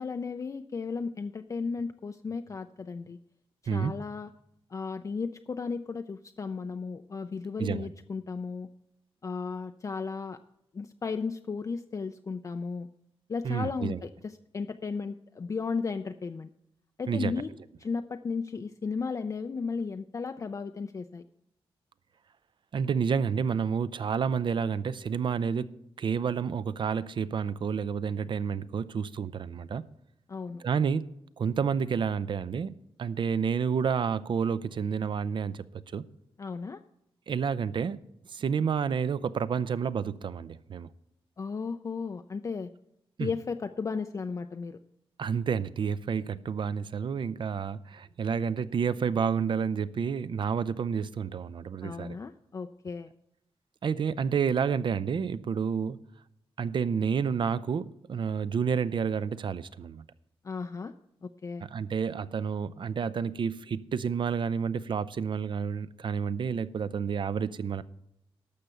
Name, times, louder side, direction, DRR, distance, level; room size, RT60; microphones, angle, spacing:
voice 1, 0.0-3.2 3.7-4.3 4.7-8.7 9.2-10.4 10.7-12.9 13.3-16.5 17.0-17.5 17.8-21.2 30.3-30.6 36.4-36.8 41.4-42.7 43.2-44.8 51.8-53.1 60.4-60.9 61.2-61.6, left 5 dB, 35° left, 0.4 m, -35 dB
voice 2, 13.4-14.0 17.1-17.3 22.7-25.7 26.0-29.8 30.6-31.0 31.4-35.6 35.9-36.0 37.3-38.0 38.3-40.9 43.2-43.3 45.2-52.2 53.8-56.0 56.6-60.0 61.6-67.8, right 6 dB, 55° right, 0.4 m, -30 dB
12.0 x 6.5 x 6.8 m
wide cardioid pair, 135°, 10 cm